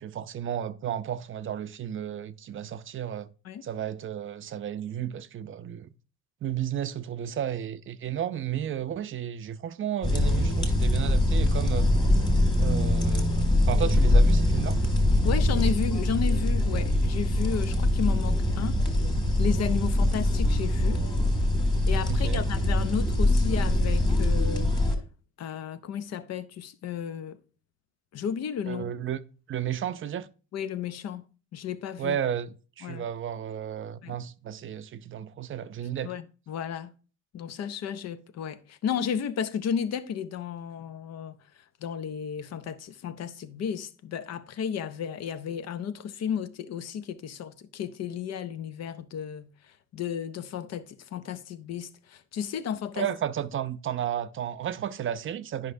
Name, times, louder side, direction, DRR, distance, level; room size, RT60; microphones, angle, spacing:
voice 1, 0.0-3.3 3.6-5.9 6.4-11.9 12.6-13.3 13.7-14.8 22.1-22.5 28.7-29.2 29.5-30.3 32.0-36.1 53.0-55.7, right 10 dB, 45° right, 0.5 m, -33 dB
sound 1, 10.0-24.9, left 1 dB, 15° left, 1.7 m, -23 dB
voice 2, 15.2-18.8 19.4-21.0 21.9-24.7 25.4-27.4 28.1-28.9 30.5-31.2 31.5-32.2 32.8-33.1 34.0-34.2 36.0-36.9 37.3-53.1, left 8 dB, 60° left, 0.6 m, -33 dB
9.7 x 5.3 x 2.6 m
cardioid pair, 110°, 29 cm